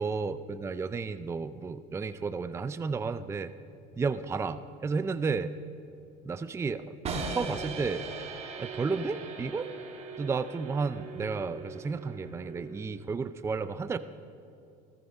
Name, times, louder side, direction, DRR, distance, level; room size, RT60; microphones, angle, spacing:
voice 1, 0.0-3.5 4.0-5.5 6.2-6.8 7.1-8.0 8.6-9.7 10.2-14.0, right 4 dB, 15° right, 12 dB, 0.5 m, -32 dB
sound 1, 7.0-13.0, right 3 dB, 35° right, 2.7 m, -40 dB
17.5 x 15.0 x 5.5 m, 2.7 s
cardioid pair, 120°, 17 cm